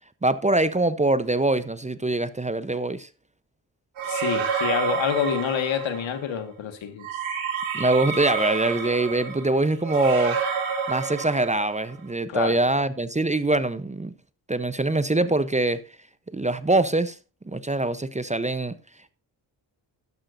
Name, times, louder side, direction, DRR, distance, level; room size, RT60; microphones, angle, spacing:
voice 1, 0.2-3.1 7.7-10.4 10.9-14.1 14.5-15.8 16.3-17.2 17.5-18.7, right 2 dB, 15° right, 0.8 m, -23 dB
sound 1, 4.0-6.2 7.0-11.9, right 6 dB, 85° right, 3.4 m, -29 dB
voice 2, 4.1-7.1 12.3-12.6, left 8 dB, 75° left, 1.8 m, -27 dB
12.0 x 11.5 x 2.6 m
cardioid pair, 65°, 46 cm